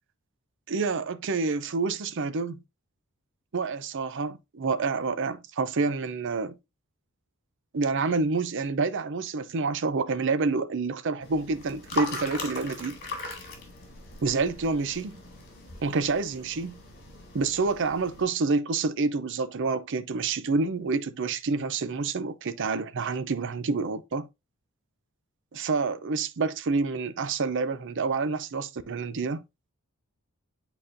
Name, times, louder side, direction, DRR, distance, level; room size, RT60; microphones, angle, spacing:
voice 1, 0.7-2.6 3.5-6.6 7.7-13.0 14.2-15.1 15.8-16.8 17.3-24.3 25.5-29.4, right 4 dB, 60° right, 0.6 m, -28 dB
sound 1, 11.2-18.3, left 3 dB, 50° left, 2.2 m, -39 dB
8.7 x 4.1 x 2.6 m
head